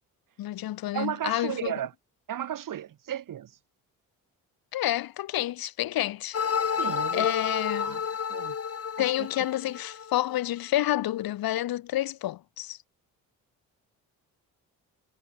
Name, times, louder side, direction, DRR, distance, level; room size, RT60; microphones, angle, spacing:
voice 1, 0.4-1.7 4.7-6.4 7.1-8.0 9.0-12.8, left 14 dB, 85° left, 4.3 m, -29 dB
voice 2, 0.9-1.9 2.3-3.5 6.8-7.3 7.8-8.6 9.0-9.3, right 10 dB, 65° right, 3.1 m, -34 dB
sound 1, 6.3-10.3, left 7 dB, 40° left, 2.7 m, -30 dB
cardioid pair, 90°, 35 cm